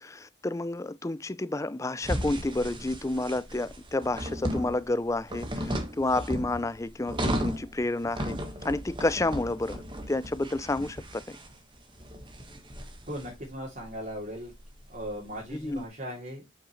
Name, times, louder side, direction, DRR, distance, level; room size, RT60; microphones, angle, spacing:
voice 1, 0.0-8.4 8.6-9.8 10.1-11.4 15.5-15.8, left 2 dB, 15° left, 0.4 m, -30 dB
sound 1, 2.0-15.8, equal, 25° right, 1.4 m, -36 dB
voice 2, 13.0-14.5 14.9-16.5, equal, 40° right, 2.9 m, -38 dB
7.9 x 6.2 x 3.1 m
head